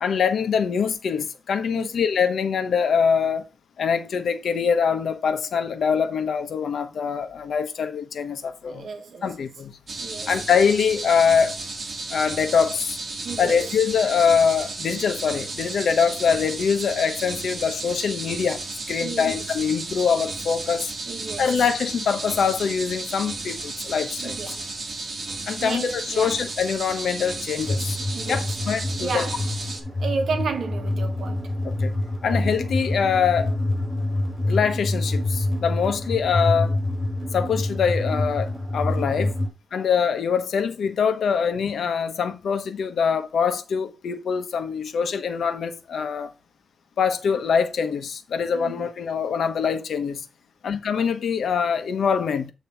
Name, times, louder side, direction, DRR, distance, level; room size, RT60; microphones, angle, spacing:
voice 1, 0.0-3.5 3.8-8.9 9.2-9.8 10.3-11.6 12.1-13.0 13.4-18.6 18.9-20.9 21.4-24.6 25.5-28.0 28.3-29.3 31.6-32.0 32.2-33.5 34.4-36.7 37.3-39.3 39.7-46.3 47.0-50.2 50.6-52.5, left 6 dB, 75° left, 1.0 m, -24 dB
voice 2, 8.7-9.3 10.0-10.3 13.2-13.6 19.0-19.3 21.1-21.4 24.2-24.6 25.6-26.3 28.1-28.4 29.0-29.4 30.0-31.5 32.3-32.4 48.5-48.8, right 4 dB, 65° right, 1.1 m, -32 dB
sound 1, 9.9-29.8, right 3 dB, 45° right, 1.8 m, -33 dB
sound 2, 27.6-39.5, left 1 dB, 15° right, 3.9 m, -26 dB
8.8 x 3.1 x 5.5 m
wide cardioid pair, 115°, 0 cm